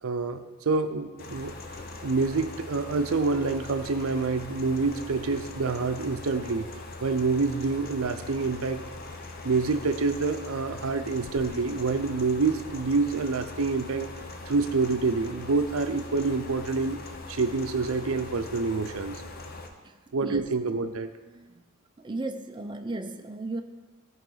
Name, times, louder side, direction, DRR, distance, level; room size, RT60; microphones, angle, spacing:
voice 1, 0.0-1.5 2.0-6.7 7.0-8.8 9.4-14.1 14.5-17.0 17.3-19.2 20.1-21.1, right 4 dB, 80° right, 9 dB, 0.6 m, -27 dB
sound 1, 1.2-19.7, left 2 dB, 45° left, 0.8 m, -41 dB
voice 2, 22.0-23.6, right 2 dB, 20° right, 6 dB, 0.5 m, -35 dB
14.0 x 4.8 x 4.0 m, 1.3 s
head